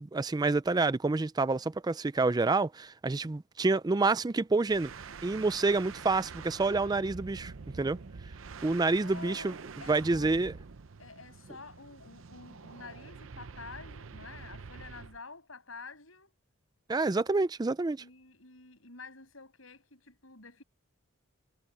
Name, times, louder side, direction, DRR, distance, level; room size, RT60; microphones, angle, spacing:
voice 1, 0.0-4.9 5.2-8.0 8.6-9.5 9.9-10.5 16.9-18.0, right 3 dB, 20° right, 0.4 m, -28 dB
sound 1, 4.7-15.2, right 5 dB, 70° right, 0.7 m, -46 dB
voice 2, 9.0-10.4 11.0-16.3 18.0-20.6, left 4 dB, 80° left, 7.7 m, -49 dB
head